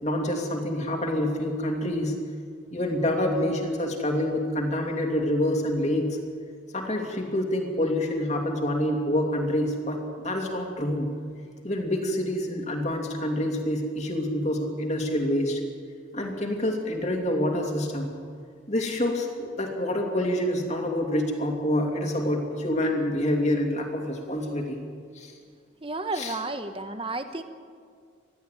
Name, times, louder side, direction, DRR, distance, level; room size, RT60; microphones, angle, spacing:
voice 1, 0.0-2.2 2.7-6.2 6.7-11.1 11.6-15.6 16.1-18.1 18.7-24.8 25.1-25.3 26.2-26.3, left 1 dB, 35° left, 1 dB, 2.8 m, -27 dB
voice 2, 25.8-27.4, right 2 dB, 25° right, 9 dB, 1.1 m, -32 dB
21.0 x 14.0 x 9.2 m, 2.1 s
head